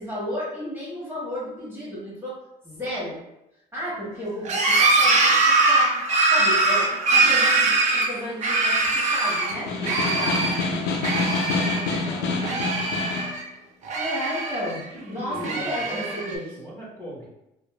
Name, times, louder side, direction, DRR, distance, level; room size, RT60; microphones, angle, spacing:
voice 1, 0.0-2.4 2.6-3.2 3.7-5.9 6.3-10.6 13.9-16.5, equal, 15° right, -7 dB, 1.2 m, -33 dB
sound 1, 4.4-9.5 9.8-10.7 11.0-12.0 12.2-13.4 13.8-14.8 15.3-16.3, right 3 dB, 45° right, 0.5 m, -22 dB
Snare drum, 9.5-13.4, left 3 dB, 80° left, 0.5 m, -27 dB
voice 2, 12.0-12.8 14.7-14.8 15.1-17.3, right 1 dB, 20° left, -8 dB, 1.0 m, -39 dB
3.0 x 2.0 x 2.2 m, 0.88 s
cardioid pair, 110°, 17 cm